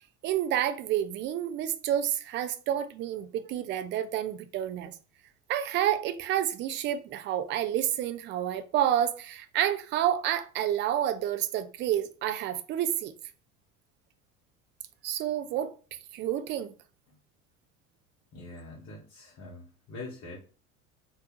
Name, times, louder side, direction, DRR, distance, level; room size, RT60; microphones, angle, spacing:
voice 1, 0.2-4.9 5.5-13.1 15.0-15.7 16.1-16.7, right 11 dB, 30° right, 0.3 m, -29 dB
voice 2, 18.3-20.4, left 2 dB, 35° left, 1.2 m, -44 dB
3.2 x 2.8 x 3.0 m
figure-of-eight pair, 70°, 45 cm